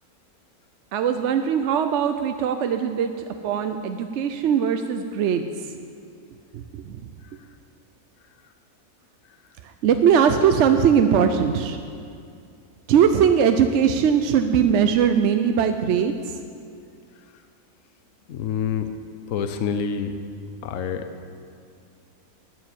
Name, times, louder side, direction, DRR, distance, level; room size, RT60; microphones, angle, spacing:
voice 1, 0.9-5.7 6.5-7.1 9.6-11.8 12.9-16.4, right 7 dB, 65° right, 7 dB, 0.7 m, -20 dB
voice 2, 18.3-18.9 19.3-20.2 20.6-21.1, left 7 dB, 65° left, 9 dB, 1.0 m, -27 dB
9.4 x 7.1 x 8.8 m, 2.4 s
omnidirectional pair, 1.6 m